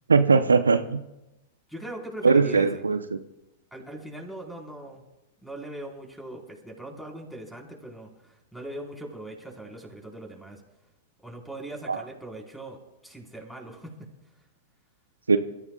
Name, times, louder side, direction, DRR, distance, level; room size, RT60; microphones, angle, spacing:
voice 1, 0.1-1.0 2.2-3.0 11.9-12.0 15.3-15.4, right 4 dB, 85° right, 10 dB, 0.7 m, -19 dB
voice 2, 1.7-2.8 3.7-5.0 5.4-10.6 11.2-12.8 13.0-14.1, right 1 dB, ahead, 0 dB, 4.2 m, -40 dB
28.5 x 14.5 x 2.3 m, 0.95 s
figure-of-eight pair, 100°, 0 cm